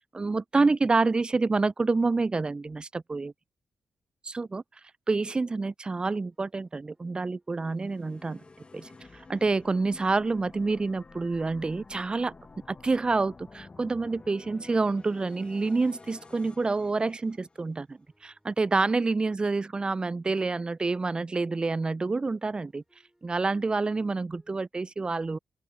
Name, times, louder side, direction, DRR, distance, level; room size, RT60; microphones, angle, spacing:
voice 1, 0.1-3.3 4.2-4.6 5.1-8.4 8.7-12.3 12.7-22.8 23.2-25.4, right 3 dB, 30° right, 0.3 m, -28 dB
sound 1, 6.3-12.1 12.4-24.6, right 1 dB, 10° right, 7.7 m, -72 dB
sound 2, 7.6-17.8, left 3 dB, 35° left, 1.0 m, -51 dB
open air
supercardioid pair, 45°, 3 cm